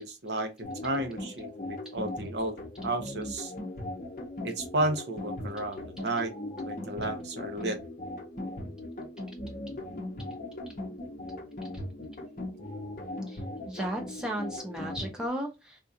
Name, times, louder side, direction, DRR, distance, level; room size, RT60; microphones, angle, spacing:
voice 1, 0.0-3.5 4.4-6.3 6.6-7.8, right 2 dB, 65° right, 0.7 m, -33 dB
sound 1, 0.6-15.3, left 1 dB, 45° left, 0.7 m, -39 dB
voice 2, 13.3-15.8, right 1 dB, 5° right, 0.8 m, -35 dB
3.6 x 2.4 x 2.7 m
head